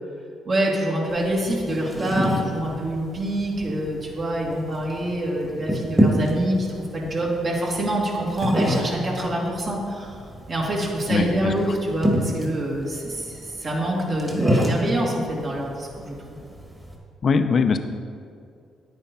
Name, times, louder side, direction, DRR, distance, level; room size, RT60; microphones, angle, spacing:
voice 1, 0.5-6.7 6.9-10.2 10.5-16.4, right 1 dB, 50° right, -4 dB, 2.4 m, -26 dB
sound 1, 1.1-17.0, right 1 dB, 20° right, 2.0 m, -28 dB
voice 2, 11.1-11.5 17.2-17.8, left 5 dB, 50° left, 8 dB, 0.7 m, -21 dB
9.6 x 9.5 x 4.3 m, 2.3 s
cardioid pair, 90°, 0 cm